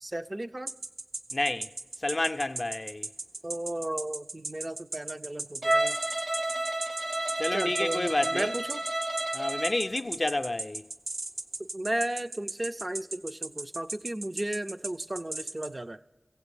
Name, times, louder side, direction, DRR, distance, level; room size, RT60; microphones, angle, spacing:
voice 1, 0.0-0.7 3.4-6.0 7.5-8.8 11.6-16.0, right 1 dB, 35° right, 0.4 m, -34 dB
sound 1, 0.7-15.7, right 2 dB, 80° right, 0.8 m, -36 dB
voice 2, 1.3-1.7 2.0-3.1 7.4-8.5 9.3-10.9, left 2 dB, 40° left, 0.4 m, -30 dB
Bowed string instrument, 5.6-9.8, right 1 dB, 50° right, 0.9 m, -30 dB
16.5 x 8.0 x 7.0 m
wide cardioid pair, 50°, 0 cm